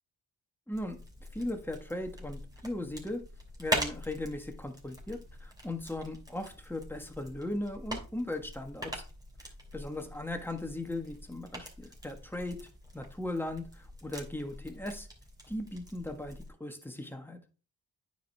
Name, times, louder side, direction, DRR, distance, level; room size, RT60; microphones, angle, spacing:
voice 1, 0.7-1.0 1.3-3.2 3.6-9.0 9.7-12.7 12.9-15.1 15.5-17.4, left 1 dB, 5° left, 5 dB, 1.5 m, -38 dB
sound 1, 0.7-16.5, right 1 dB, 10° right, 2.9 m, -42 dB
9.3 x 5.1 x 3.5 m, 0.36 s
cardioid pair, 70°, 37 cm